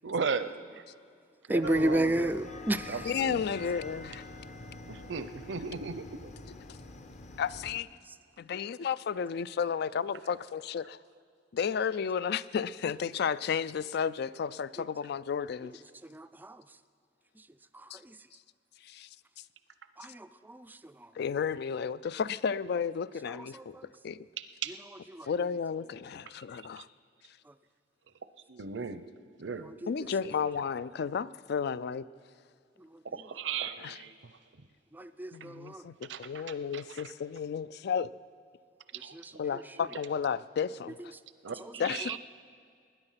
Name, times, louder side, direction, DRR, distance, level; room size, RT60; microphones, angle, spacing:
voice 1, 0.0-0.5 1.5-2.3 2.9-3.5 4.9-6.3 24.6-24.7 28.5-29.0 29.4-29.7 33.1-34.1 36.1-36.2 36.7-36.8 39.0-39.1 41.4-42.2, right 5 dB, 75° right, 0.7 m, -35 dB
voice 2, 1.5-3.1 16.1-16.6 18.0-18.1 20.0-20.8 23.5-23.8 25.1-25.3 29.8-29.9 34.9-35.8 39.1-39.2 41.6-41.7, right 1 dB, 10° right, 0.4 m, -31 dB
sound 1, 1.6-7.8, left 2 dB, 40° left, 0.8 m, -46 dB
voice 3, 3.0-4.2 7.4-7.9 8.4-11.0 11.5-15.8 17.9-18.0 18.8-19.1 21.1-24.3 25.2-26.9 29.9-32.1 33.8-34.0 35.3-38.1 39.4-41.1 41.8-42.2, left 6 dB, 60° left, 0.4 m, -33 dB
20.0 x 9.8 x 5.8 m
head